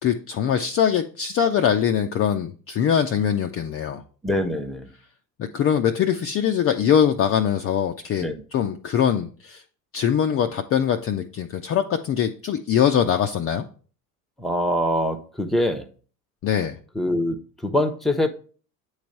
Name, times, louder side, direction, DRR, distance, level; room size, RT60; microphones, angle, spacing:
voice 1, 0.0-4.0 5.4-9.6 9.9-13.7 16.4-16.8, left 8 dB, 30° left, 0.4 m, -22 dB
voice 2, 4.2-4.9 8.2-8.3 14.4-15.9 16.9-17.4 17.6-18.3, left 1 dB, ahead, 0.7 m, -23 dB
8.3 x 3.2 x 5.2 m
hypercardioid pair, 85°, 48 cm